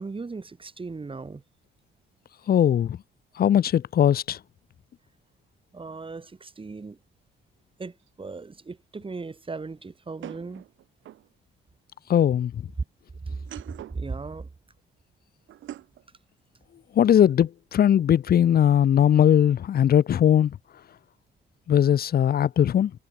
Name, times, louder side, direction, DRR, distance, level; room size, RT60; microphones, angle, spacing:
voice 1, 0.0-1.4 5.7-7.0 7.8-10.6 13.2-13.4 13.7-14.5, right 4 dB, 25° right, 4.0 m, -37 dB
voice 2, 2.5-3.0 3.4-4.4 12.1-12.6 16.9-20.6 21.7-22.9, left 10 dB, 50° left, 0.7 m, -20 dB
sound 1, 8.1-8.2 10.2-11.3 13.3-14.1 15.5-16.0, right 13 dB, 75° right, 1.7 m, -42 dB
cardioid pair, 90°, 20 cm